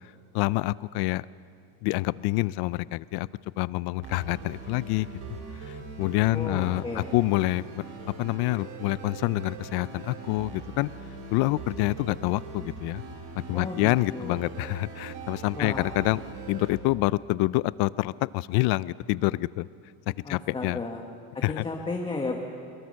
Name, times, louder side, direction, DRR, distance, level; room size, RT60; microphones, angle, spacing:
voice 1, 0.3-1.2 1.8-3.3 3.6-5.1 5.6-7.8 8.2-10.9 11.3-13.0 13.5-16.2 16.5-19.7 20.1-20.8 21.4-21.7, left 19 dB, 60° left, 20 dB, 0.5 m, -27 dB
sound 1, 4.0-16.7, right 4 dB, 65° right, 4.3 m, -41 dB
voice 2, 6.3-7.1 13.5-14.4 15.5-15.9 20.2-21.0 21.5-22.4, left 3 dB, 10° left, 2 dB, 1.1 m, -33 dB
22.5 x 22.0 x 6.4 m, 2.4 s
cardioid pair, 175°, 42 cm